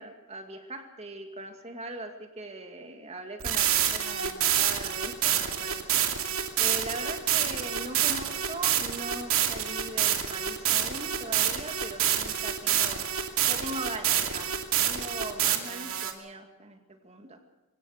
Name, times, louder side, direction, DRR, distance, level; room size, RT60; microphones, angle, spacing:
voice 1, 0.0-5.8 6.6-13.0 13.4-17.4, right 2 dB, 30° right, 5 dB, 2.3 m, -40 dB
sound 1, 3.4-16.1, right 10 dB, 65° right, 2.5 m, -27 dB
25.5 x 17.0 x 6.6 m, 1.1 s
head